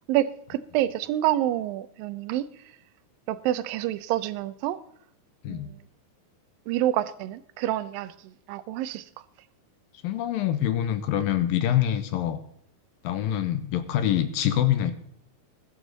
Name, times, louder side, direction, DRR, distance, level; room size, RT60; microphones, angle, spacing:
voice 1, 0.1-2.5 3.3-4.8 5.5-5.8 6.7-9.1, right 13 dB, 75° right, 2.3 m, -28 dB
voice 2, 10.0-12.4 13.0-14.9, left 11 dB, 75° left, 2.5 m, -25 dB
21.5 x 8.0 x 4.0 m
omnidirectional pair, 4.4 m